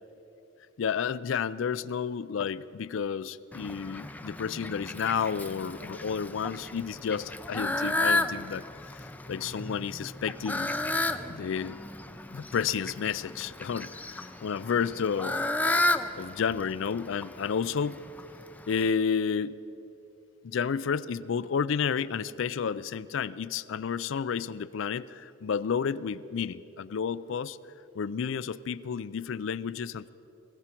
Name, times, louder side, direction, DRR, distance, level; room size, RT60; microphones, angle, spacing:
voice 1, 0.8-10.7 11.3-11.8 12.3-15.4 16.2-18.0 18.7-19.6 20.4-27.6 28.0-30.1, left 6 dB, 70° left, 16 dB, 0.4 m, -31 dB
Fowl, 3.5-18.9, left 2 dB, 10° left, 0.4 m, -33 dB
20.5 x 16.0 x 4.5 m, 2.8 s
head